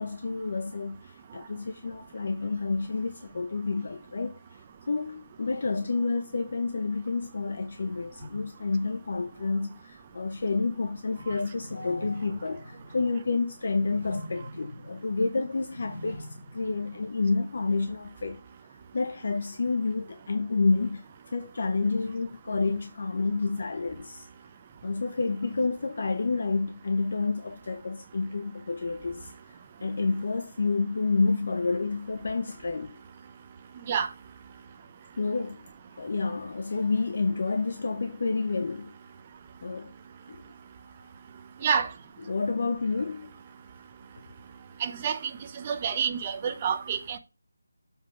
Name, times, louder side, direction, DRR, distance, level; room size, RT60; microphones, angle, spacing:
voice 1, 0.0-4.4 4.9-16.3 16.5-18.4 18.9-24.3 24.8-29.3 29.8-33.0 35.2-35.6 36.0-38.9 39.6-39.9 40.3-40.4 42.3-43.3 46.4-46.5, left 3 dB, 55° left, 0.8 m, -29 dB
sound 1, 11.5-17.5, equal, 55° right, 1.7 m, -45 dB
voice 2, 44.8-47.2, right 7 dB, 25° right, 0.7 m, -28 dB
7.3 x 3.6 x 6.1 m
figure-of-eight pair, 165°, 0 cm